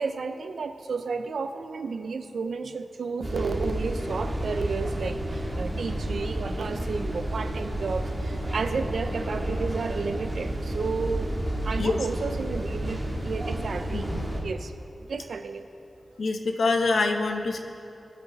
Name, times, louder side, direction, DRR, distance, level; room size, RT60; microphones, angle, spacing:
voice 1, 0.0-11.3 11.6-14.7 15.1-15.7, right 4 dB, 75° right, 9 dB, 0.6 m, -32 dB
sound 1, 3.2-14.4, right 1 dB, 15° right, 1.8 m, -31 dB
voice 2, 13.9-14.2 16.2-17.6, left 3 dB, 75° left, 4 dB, 1.0 m, -25 dB
20.5 x 7.8 x 4.0 m, 2.7 s
wide cardioid pair, 135°, 0 cm